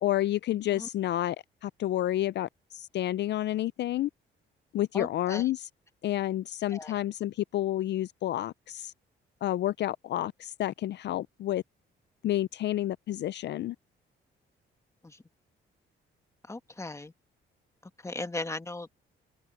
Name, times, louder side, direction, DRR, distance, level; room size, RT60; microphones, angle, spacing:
voice 1, 0.0-1.4 1.6-4.1 4.7-5.7 6.0-8.9 9.4-11.6 12.2-13.8, left 13 dB, 60° left, 0.4 m, -30 dB
voice 2, 4.9-5.5 6.7-7.0 15.0-15.2 16.5-17.1 18.0-18.9, left 2 dB, 15° left, 1.5 m, -37 dB
cardioid pair, 90°, 20 cm